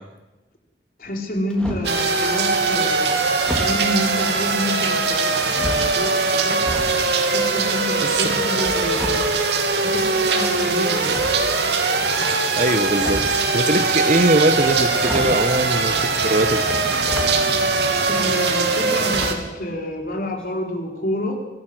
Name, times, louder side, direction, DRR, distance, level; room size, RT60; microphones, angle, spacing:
voice 1, 1.0-3.2 3.5-6.6 7.2-9.4 9.8-11.1 18.1-21.4, left 1 dB, 50° left, 2 dB, 4.5 m, -28 dB
sound 1, 1.0-2.0 3.4-3.8 4.7-5.2 5.5-7.0 7.3-10.3 11.1-11.8 12.8-13.5 14.6-14.7 15.0-15.5 16.7-17.4 17.8-17.9 19.1-19.6 19.9-20.1 20.4-20.5, equal, 5° left, 3.8 m, -31 dB
sound 2, 1.8-19.3, right 3 dB, 75° right, 2.9 m, -21 dB
voice 2, 12.5-16.6, right 1 dB, 45° right, 9 dB, 1.5 m, -21 dB
24.5 x 18.0 x 8.1 m, 1.1 s
head